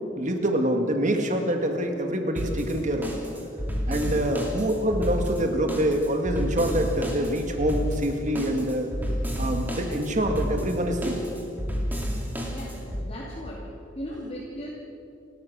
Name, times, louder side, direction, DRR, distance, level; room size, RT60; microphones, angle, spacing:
voice 1, 0.2-3.1 3.9-8.9 9.4-11.2, right 1 dB, 40° right, 4 dB, 2.1 m, -25 dB
sound 1, 2.4-13.0, equal, 10° right, 3.1 m, -31 dB
voice 2, 4.0-4.4 12.5-13.7 13.9-14.7, equal, 30° left, -5 dB, 2.9 m, -37 dB
30.0 x 13.5 x 6.4 m, 2.6 s
head